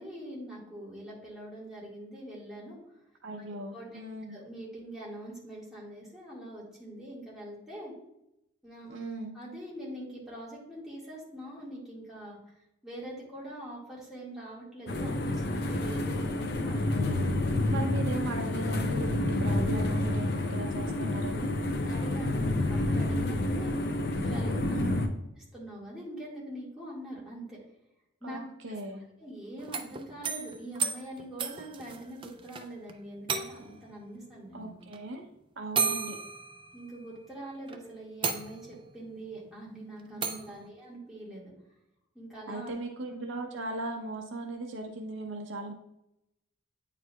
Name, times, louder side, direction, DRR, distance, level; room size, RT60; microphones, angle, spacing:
voice 1, 0.0-2.8 3.7-4.0 4.3-7.9 8.6-9.0 9.3-12.4 12.8-17.3 19.6-19.7 21.8-23.7 24.2-24.8 25.5-27.6 28.2-28.4 28.7-28.8 29.2-34.8 36.7-41.5 42.2-42.7, right 1 dB, ahead, -7 dB, 1.9 m, -43 dB
voice 2, 3.2-4.4 8.9-9.3 17.7-21.5 24.7-25.1 28.2-29.1 34.5-35.2 35.6-36.2 40.1-40.7 42.5-45.7, right 1 dB, 70° right, 3 dB, 0.7 m, -38 dB
sound 1, 14.9-25.1, left 1 dB, 55° left, 0.6 m, -29 dB
sound 2, 29.6-32.6 32.9-33.0 33.3-33.9 34.9-35.0 35.8-37.2 37.7-37.8 38.2-38.9 40.2-40.5, right 5 dB, 25° right, 0.3 m, -33 dB
8.9 x 4.7 x 2.3 m, 0.86 s
head